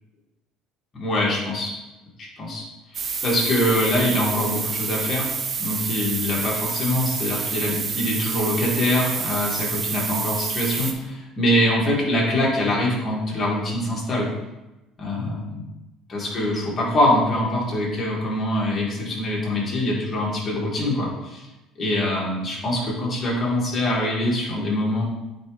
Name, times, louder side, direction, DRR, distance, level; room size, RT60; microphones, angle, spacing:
voice 1, 0.9-1.7 2.2-2.6 2.9-5.3 5.6-14.3 15.0-15.4 16.1-21.5 21.8-25.0, left 1 dB, 35° left, -4 dB, 2.4 m, -24 dB
sound 1, 2.9-10.9, right 6 dB, 35° right, 0.7 m, -28 dB
8.7 x 3.8 x 3.5 m, 1.0 s
cardioid pair, 115°, 0 cm